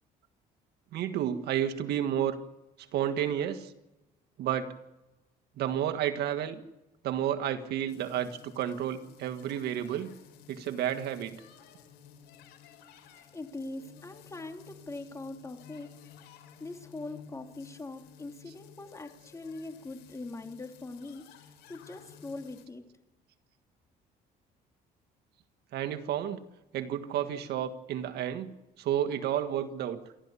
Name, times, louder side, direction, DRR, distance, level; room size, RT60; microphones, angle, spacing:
voice 1, 0.9-2.4 2.9-3.7 4.4-4.7 5.6-6.6 7.0-10.1 10.5-11.4 18.5-18.6 25.7-26.4 26.7-28.5 28.8-30.0, right 10 dB, 75° right, 8 dB, 1.7 m, -31 dB
sound 1, 7.9-22.7, left 8 dB, 90° left, 4.2 m, -55 dB
voice 2, 13.1-16.0 16.6-22.8, left 2 dB, 20° left, 4 dB, 3.0 m, -42 dB
28.0 x 12.5 x 8.4 m, 0.99 s
cardioid pair, 110°, 17 cm